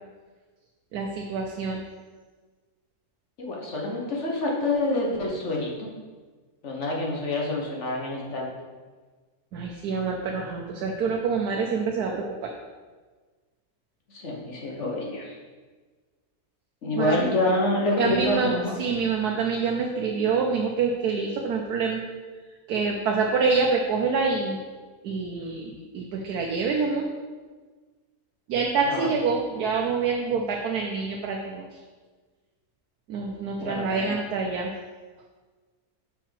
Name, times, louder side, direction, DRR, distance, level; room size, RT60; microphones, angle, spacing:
voice 1, 0.9-1.8 9.5-12.5 16.9-17.2 18.0-18.5 18.8-22.0 22.7-24.6 25.0-27.1 28.5-31.7 33.1-34.7, right 5 dB, 80° right, 1 dB, 1.2 m, -26 dB
voice 2, 3.4-5.9 6.6-8.5 14.1-15.4 16.8-18.8 28.8-29.1 33.6-34.2, left 1 dB, 50° left, -2 dB, 1.4 m, -27 dB
5.8 x 4.6 x 5.8 m, 1.4 s
omnidirectional pair, 1.7 m